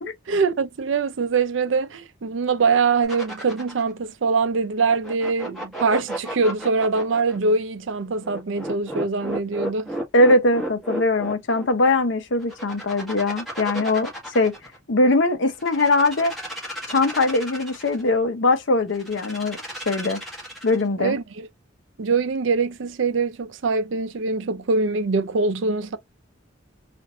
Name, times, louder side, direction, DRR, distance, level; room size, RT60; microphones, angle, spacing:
voice 1, 0.3-9.9 21.0-21.5 22.0-26.0, right 4 dB, 75° right, 0.5 m, -23 dB
sound 1, 3.0-3.9 4.9-7.4 8.2-11.6 12.4-14.8 15.5-18.0 18.9-20.9, right 1 dB, ahead, 1.7 m, -33 dB
voice 2, 10.1-14.5 14.9-16.3 16.9-19.6 19.9-20.2 20.6-21.1, left 2 dB, 70° left, 0.7 m, -21 dB
4.1 x 2.5 x 2.4 m
head